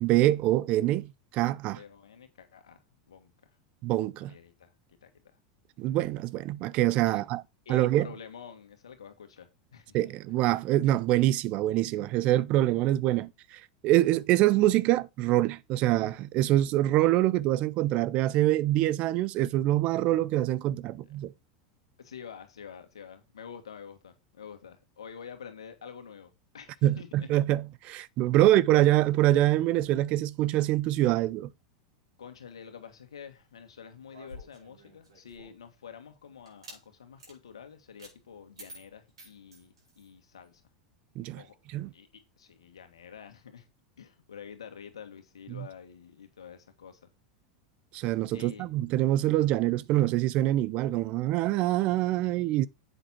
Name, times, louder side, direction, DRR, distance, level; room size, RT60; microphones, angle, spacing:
voice 1, 0.0-1.8 3.8-4.3 5.8-7.4 7.7-8.1 9.9-21.3 26.8-31.5 41.2-41.4 41.7-41.9 45.5-45.7 47.9-52.7, right 15 dB, 50° right, 0.5 m, -25 dB
voice 2, 1.7-3.3 4.2-4.7 5.0-5.4 7.0-7.2 7.7-10.1 13.1-13.3 22.0-27.3 28.4-28.5 32.2-40.6 41.3-41.6 41.9-42.1 42.4-43.7 44.0-47.0 48.3-48.7, left 7 dB, 80° left, 1.8 m, -48 dB
sound 1, 34.1-35.7 36.4-36.8 37.2-37.4 38.0-38.1 38.6-40.1, equal, 85° right, 5.0 m, -50 dB
8.0 x 6.2 x 4.3 m
hypercardioid pair, 90°, 3 cm